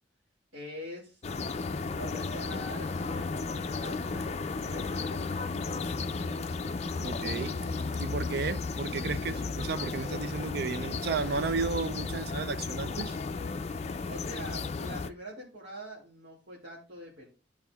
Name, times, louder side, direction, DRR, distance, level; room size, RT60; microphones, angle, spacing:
voice 1, 0.5-1.2 1.9-5.5 14.1-17.3, equal, 80° right, 2.2 m, -44 dB
sound 1, 1.2-15.1, left 4 dB, 35° left, 0.4 m, -34 dB
voice 2, 7.0-7.6 8.0-13.2, right 4 dB, 60° right, 0.4 m, -33 dB
12.5 x 4.6 x 2.3 m
head